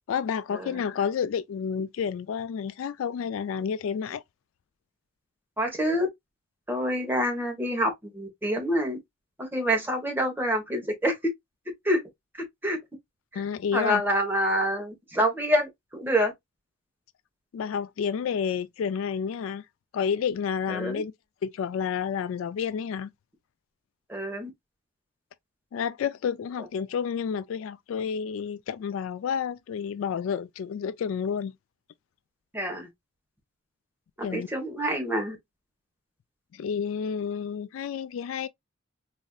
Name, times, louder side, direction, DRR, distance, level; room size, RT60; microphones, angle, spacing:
voice 1, 0.1-4.2 13.4-14.0 17.5-19.6 19.9-21.1 21.4-23.1 25.7-31.5 34.2-34.5 36.5-38.5, left 7 dB, 75° left, 0.3 m, -30 dB
voice 2, 5.6-6.1 6.7-9.0 9.4-11.2 11.8-12.0 12.6-12.8 13.3-13.4 13.7-16.3 20.7-21.0 24.1-24.5 32.5-32.9 34.2-35.4, equal, 10° right, 1.2 m, -27 dB
4.0 x 2.6 x 2.3 m
head